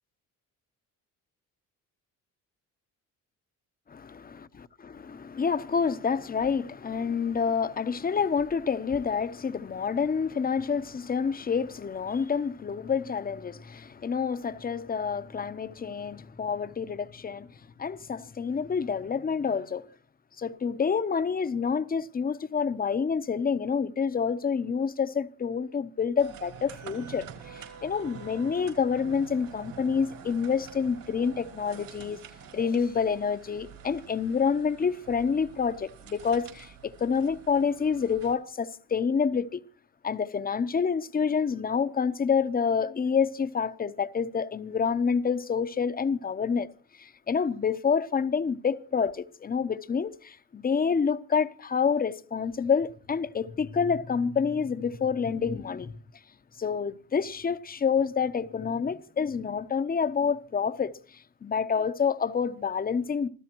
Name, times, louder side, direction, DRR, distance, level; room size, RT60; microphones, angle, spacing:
voice 1, 4.8-17.5 17.8-19.8 20.4-27.2 27.5-32.2 32.5-39.6 40.0-46.7 47.0-55.9 56.6-60.9 61.4-63.3, left 6 dB, 25° left, 0.9 m, -28 dB
sound 1, 26.2-38.4, right 7 dB, 75° right, 5.2 m, -47 dB
26.0 x 15.0 x 3.0 m
cardioid pair, 105°, 34 cm